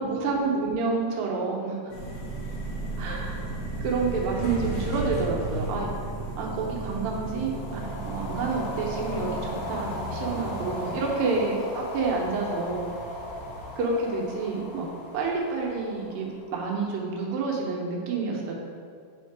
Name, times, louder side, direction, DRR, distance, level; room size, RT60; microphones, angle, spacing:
voice 1, 0.0-1.8 3.0-3.4 3.8-5.9 6.4-12.9 13.8-18.5, right 4 dB, 85° right, -1 dB, 2.7 m, -29 dB
sound 1, 1.9-13.7, right 2 dB, 60° left, 2.0 m, -35 dB
sound 2, 7.3-16.8, left 2 dB, 85° left, 2.6 m, -38 dB
8.3 x 3.6 x 4.7 m, 2.2 s
omnidirectional pair, 4.0 m